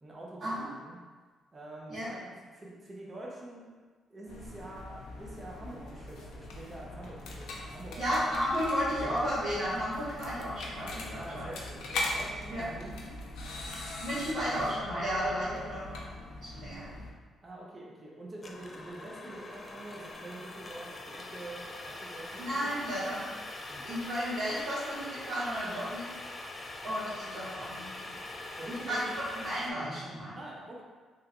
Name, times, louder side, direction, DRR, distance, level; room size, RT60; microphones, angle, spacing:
voice 1, 0.0-1.0 1.5-3.7 4.1-8.0 11.2-13.2 17.4-22.7 25.6-25.8 28.6-29.1 30.3-30.8, right 1 dB, 25° right, -3 dB, 0.7 m, -46 dB
sound 1, 4.3-17.1, left 2 dB, 85° left, 0.5 m, -41 dB
voice 2, 8.0-11.5 12.5-12.6 14.0-15.9 16.4-16.9 22.4-23.3 23.8-26.1 26.8-27.9 28.7-29.0 29.3-30.4, equal, 60° right, -14 dB, 1.2 m, -33 dB
sound 2, 18.4-29.7, left 2 dB, 30° left, 0.4 m, -43 dB
3.1 x 2.9 x 2.4 m, 1.4 s
cardioid pair, 90°, 0 cm